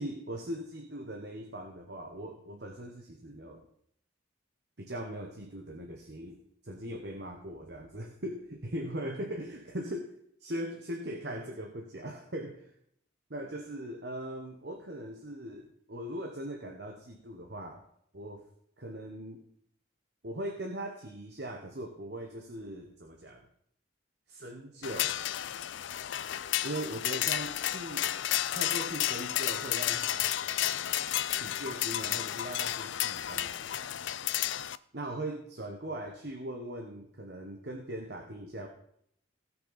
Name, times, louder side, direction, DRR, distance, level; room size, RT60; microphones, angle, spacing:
voice 1, 0.0-3.6 4.8-6.4 6.6-10.1 10.4-12.7 13.3-17.8 18.1-18.4 18.8-19.4 20.2-23.5 24.3-25.2 26.6-30.3 31.3-33.8 34.9-38.7, right 1 dB, 60° right, 2 dB, 1.3 m, -40 dB
sound 1, 24.8-34.8, left 12 dB, 75° left, 0.4 m, -32 dB
17.5 x 6.0 x 4.2 m, 0.70 s
head